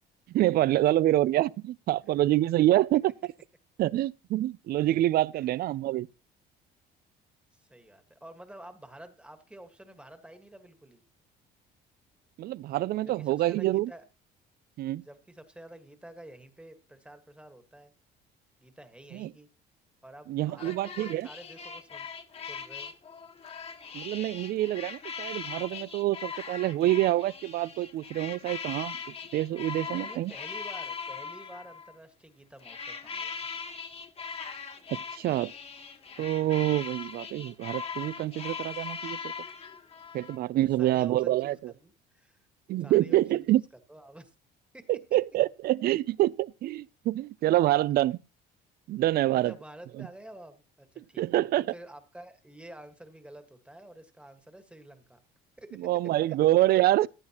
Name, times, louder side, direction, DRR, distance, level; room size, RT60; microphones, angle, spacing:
voice 1, 0.3-3.1 3.8-6.1 12.4-13.9 14.8-15.0 19.1-19.3 20.3-21.3 23.9-29.0 29.3-30.3 34.9-35.5 36.2-39.3 40.1-41.7 42.7-43.6 44.9-48.2 48.9-49.5 51.0-51.6 55.8-57.1, right 15 dB, 60° right, 0.5 m, -26 dB
voice 2, 7.5-11.0 13.0-14.0 15.0-17.9 18.6-19.5 20.0-22.1 22.4-22.9 29.8-33.5 40.2-40.4 40.8-42.5 42.8-43.2 43.5-43.6 43.9-44.3 44.7-45.2 49.3-55.2 55.6-55.8, right 1 dB, 5° right, 1.6 m, -49 dB
sound 1, 20.6-31.9 32.6-40.4, left 6 dB, 35° left, 1.4 m, -40 dB
15.5 x 10.5 x 3.0 m
cardioid pair, 115°, 18 cm